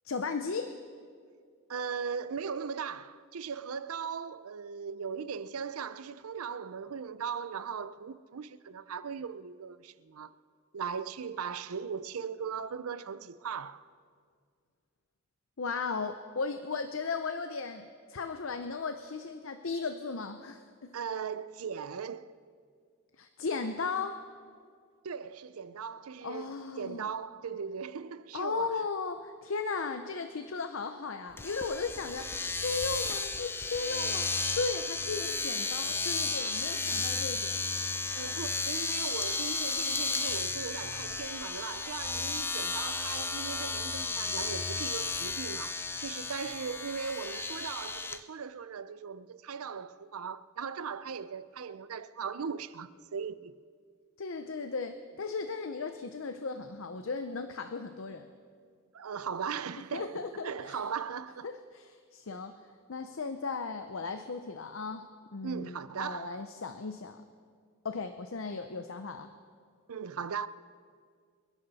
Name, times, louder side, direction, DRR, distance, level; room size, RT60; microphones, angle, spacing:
voice 1, 0.0-0.8 15.6-20.9 23.2-24.2 26.2-27.1 28.3-32.3 32.5-37.6 54.2-58.3 59.9-60.8 61.4-67.2 67.8-69.3, left 4 dB, 65° left, 0.6 m, -36 dB
voice 2, 1.7-10.3 10.7-13.9 20.9-22.3 25.0-28.8 38.1-53.5 58.9-61.5 62.3-62.4 65.4-66.4 69.9-70.5, right 6 dB, 85° right, 0.5 m, -38 dB
Domestic sounds home sounds, 31.4-48.2, left 3 dB, 10° left, 0.4 m, -33 dB
28.0 x 11.0 x 4.1 m
head